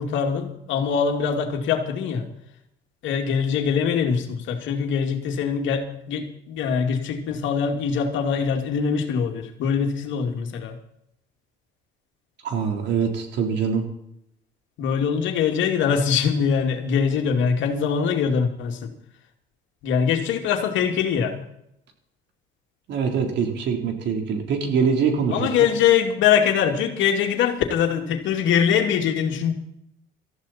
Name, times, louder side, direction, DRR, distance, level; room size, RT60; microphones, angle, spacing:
voice 1, 0.0-2.3 3.0-10.8 14.8-18.9 19.8-21.4 25.3-29.5, left 7 dB, 70° left, 4 dB, 2.6 m, -23 dB
voice 2, 12.4-13.8 22.9-25.4, right 6 dB, 60° right, 3 dB, 3.8 m, -23 dB
18.5 x 14.0 x 4.4 m, 0.78 s
cardioid pair, 95°, 20 cm